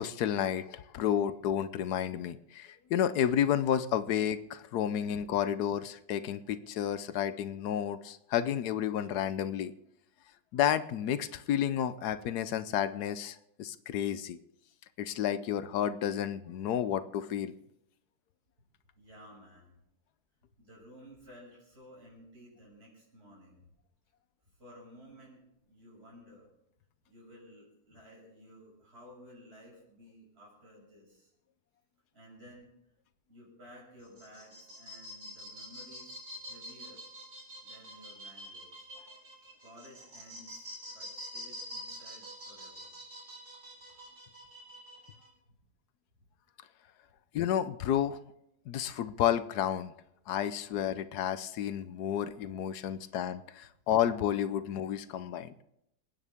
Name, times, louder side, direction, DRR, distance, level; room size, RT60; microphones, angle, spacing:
voice 1, 0.0-9.7 10.5-14.4 15.0-17.5 47.3-48.2 48.7-49.9 50.3-55.5, left 10 dB, 85° left, 13 dB, 1.3 m, -31 dB
voice 2, 19.0-19.8 20.6-23.7 24.6-26.5 27.0-31.3 32.1-32.7 33.3-37.0 37.6-38.9 39.6-42.9 52.8-53.1, equal, 40° right, -4 dB, 6.5 m, -55 dB
sound 1, 34.0-45.3, equal, 75° right, 5.1 m, -46 dB
27.0 x 9.4 x 3.5 m, 0.79 s
omnidirectional pair, 1.7 m